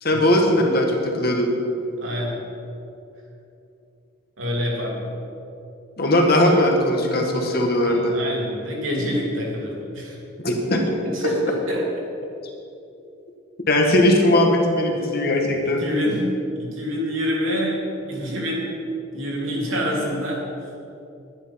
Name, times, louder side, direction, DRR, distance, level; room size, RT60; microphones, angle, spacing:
voice 1, 0.0-1.5 6.0-8.2 10.4-10.8 11.2-11.3 13.7-15.8, left 1 dB, 50° left, 1 dB, 1.6 m, -19 dB
voice 2, 2.0-2.5 4.4-5.1 7.9-10.2 11.0-11.8 15.6-16.3 16.5-17.8 18.1-18.7 19.1-20.4, equal, 70° right, -3 dB, 2.9 m, -26 dB
11.0 x 10.5 x 5.7 m, 2.7 s
head